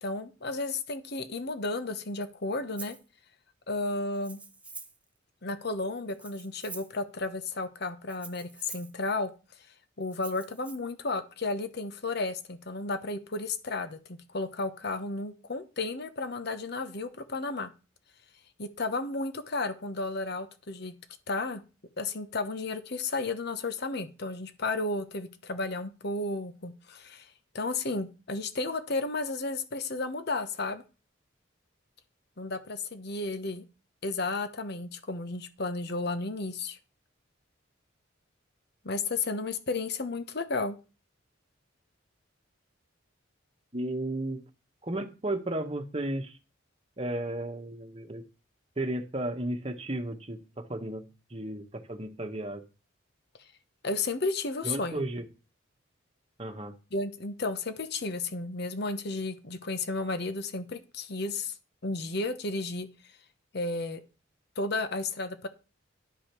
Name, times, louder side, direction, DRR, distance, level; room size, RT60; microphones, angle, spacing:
voice 1, 0.0-3.0 3.7-4.4 5.4-9.3 10.0-17.7 18.6-21.0 21.3-21.6 22.0-27.3 27.5-30.8 32.4-33.6 34.0-36.8 38.8-40.8 53.8-55.0 56.9-61.6 61.8-62.9 63.5-64.0 64.6-65.5, left 3 dB, 55° left, 9 dB, 1.1 m, -33 dB
Rattle (instrument), 2.8-3.0 4.1-5.0 6.1-7.0 8.1-8.9 10.1-10.8, right 3 dB, 5° right, 0.7 m, -46 dB
voice 2, 43.7-44.4 44.8-46.4 47.0-48.2 48.8-52.6 54.6-55.3 56.4-56.7, right 1 dB, 30° right, 5 dB, 1.3 m, -34 dB
11.5 x 5.1 x 6.0 m, 0.31 s
head